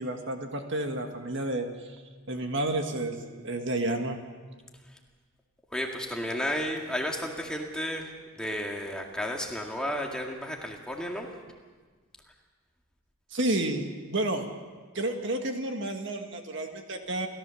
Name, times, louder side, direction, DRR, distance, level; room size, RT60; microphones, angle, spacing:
voice 1, 0.0-2.0 2.3-3.2 3.4-4.2 13.3-14.5 14.9-17.3, right 1 dB, 55° right, 4 dB, 1.8 m, -30 dB
voice 2, 5.7-11.3, equal, 5° left, 0 dB, 1.9 m, -33 dB
30.0 x 14.0 x 7.1 m, 1.4 s
head